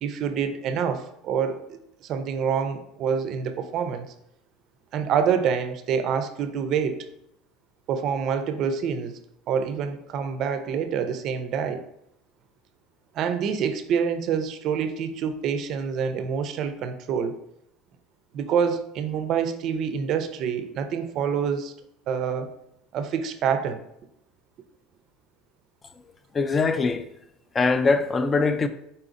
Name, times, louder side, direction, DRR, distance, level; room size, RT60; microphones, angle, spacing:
voice 1, 0.0-4.1 4.9-7.0 7.9-9.2 9.5-11.8 13.1-17.3 18.3-21.7 22.1-22.5 22.9-23.8, right 7 dB, 45° right, 0.4 m, -26 dB
voice 2, 26.3-27.1 27.5-28.7, left 4 dB, 20° left, 0.3 m, -22 dB
4.1 x 3.9 x 2.5 m
supercardioid pair, 130°, 0 cm